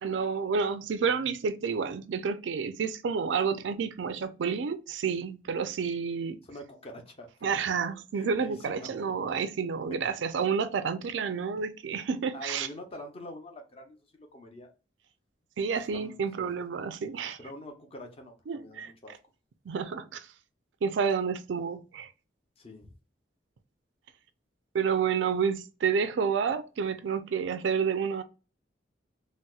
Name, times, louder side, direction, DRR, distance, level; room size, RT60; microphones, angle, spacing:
voice 1, 0.0-6.4 7.4-12.7 15.6-17.4 18.5-18.9 19.7-20.3 20.8-22.1 24.7-28.2, right 6 dB, 85° right, 0.4 m, -30 dB
voice 2, 6.5-7.7 8.1-8.9 9.9-10.0 12.3-14.7 15.8-16.5 17.4-19.1 22.6-22.9, left 1 dB, 30° left, 0.7 m, -45 dB
4.0 x 2.0 x 2.3 m
head